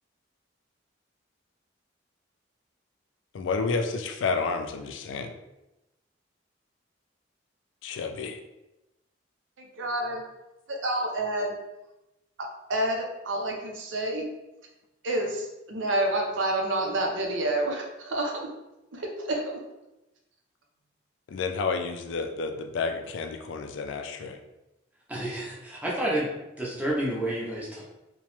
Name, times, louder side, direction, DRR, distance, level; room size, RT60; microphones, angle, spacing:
voice 1, 3.3-5.3 7.8-8.4 21.3-24.4, left 4 dB, 75° left, 5 dB, 0.3 m, -30 dB
voice 2, 9.6-10.2 10.7-11.6 12.4-14.3 15.0-18.5 18.9-19.6, right 1 dB, 80° right, 1 dB, 0.6 m, -29 dB
voice 3, 25.1-26.3 26.6-27.8, right 1 dB, 10° right, -5 dB, 0.6 m, -29 dB
2.9 x 2.2 x 3.0 m, 0.96 s
head